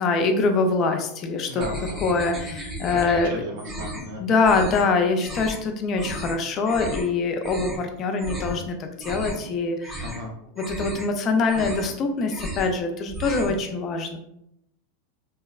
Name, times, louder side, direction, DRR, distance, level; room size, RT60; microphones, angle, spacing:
voice 1, 0.0-1.6 2.0-3.3 4.2-10.1 10.6-14.2, left 4 dB, 35° left, 5 dB, 0.4 m, -24 dB
voice 2, 1.5-2.0 3.2-4.3 10.0-10.3, right 1 dB, 65° right, 1 dB, 0.7 m, -35 dB
sound 1, 1.6-3.3 3.6-4.1 4.4-4.8 5.2-5.6 5.9-6.3 6.7-7.1 7.4-7.8 8.2-8.6 8.9-9.5 9.8-10.2 10.6-11.1 11.4-12.0 12.3-12.7 13.0-13.6, equal, 15° right, 0.5 m, -34 dB
2.6 x 2.1 x 2.3 m, 0.78 s
supercardioid pair, 140°, 0 cm